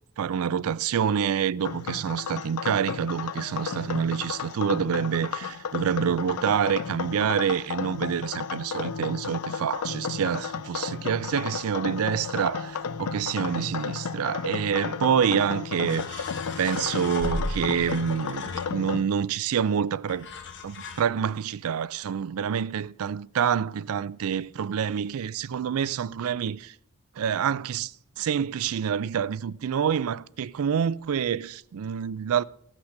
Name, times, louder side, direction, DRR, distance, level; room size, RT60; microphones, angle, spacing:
voice 1, 0.2-16.3 16.6-20.3 20.6-26.7 27.2-27.9 28.2-32.4, right 8 dB, 70° right, 0.4 m, -27 dB
sound 1, 1.6-19.0, left 6 dB, 85° left, 0.5 m, -33 dB
sound 2, 15.9-19.1 20.1-21.0, left 2 dB, 55° left, 1.2 m, -36 dB
14.5 x 6.0 x 6.5 m
head